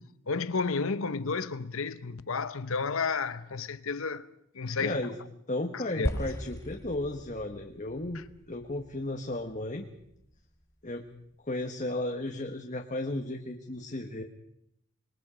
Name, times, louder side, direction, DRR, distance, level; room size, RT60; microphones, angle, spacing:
voice 1, 0.3-4.3 4.5-5.0 5.7-6.2 8.1-8.2, left 4 dB, 65° left, 0.8 m, -32 dB
voice 2, 4.7-5.1 5.5-8.2 8.5-9.9 10.8-11.0 11.4-14.2, left 1 dB, 35° left, 1.3 m, -34 dB
sound 1, 6.0-10.4, equal, 15° left, 1.2 m, -38 dB
26.5 x 22.0 x 5.1 m
head